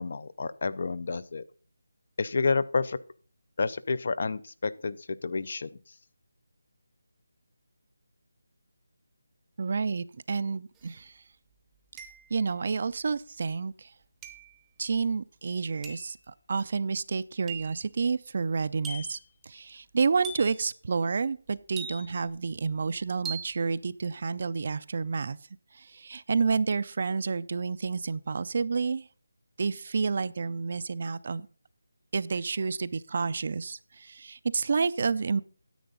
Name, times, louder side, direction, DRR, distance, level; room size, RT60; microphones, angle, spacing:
voice 1, 0.0-1.4 2.2-3.0 3.6-5.7, left 4 dB, 45° left, 18 dB, 0.5 m, -29 dB
voice 2, 9.6-11.2 12.3-13.9 14.8-25.4 25.7-29.1 29.6-31.5 32.1-35.4, right 5 dB, 40° right, 17 dB, 0.4 m, -30 dB
sound 1, 10.8-10.9 12.0-12.5 14.2-14.6 15.8-16.2 17.5-17.8 18.8-19.3 20.2-20.7 21.8-22.3 23.3-23.6, right 4 dB, 5° right, 0.7 m, -40 dB
10.0 x 7.9 x 3.9 m, 0.40 s
figure-of-eight pair, 170°, 0 cm